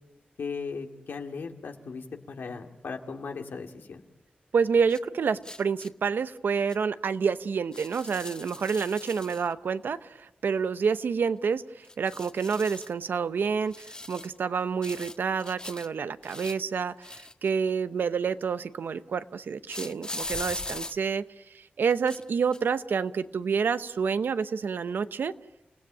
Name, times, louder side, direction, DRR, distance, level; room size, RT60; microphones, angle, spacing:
voice 1, 0.4-4.0, left 5 dB, 90° left, 4 dB, 2.2 m, -37 dB
voice 2, 4.5-25.3, right 6 dB, 85° right, 13 dB, 0.8 m, -28 dB
sound 1, 4.9-5.0 5.4-5.9 6.7-6.8 7.7-9.5 11.8-12.9 13.7-14.4 14.8-15.9 16.2-17.7 19.7-20.9 21.9-22.2 22.5-22.7, left 2 dB, 25° left, 1.3 m, -40 dB
29.0 x 17.0 x 8.8 m, 0.98 s
cardioid pair, 60°, 3 cm